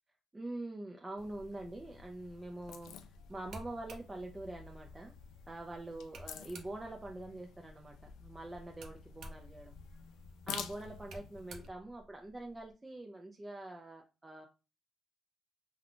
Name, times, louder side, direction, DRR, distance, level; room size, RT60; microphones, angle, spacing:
voice 1, 0.3-3.0 3.3-5.1 5.5-9.7 10.5-14.5, right 2 dB, 20° right, 2 dB, 0.5 m, -45 dB
sound 1, 1.2-11.7, left 7 dB, 85° left, 0.3 m, -50 dB
sound 2, 3.3-7.1 8.5-12.7, right 1 dB, 70° right, 0.7 m, -55 dB
2.4 x 2.3 x 3.5 m, 0.30 s
cardioid pair, 90°, 0 cm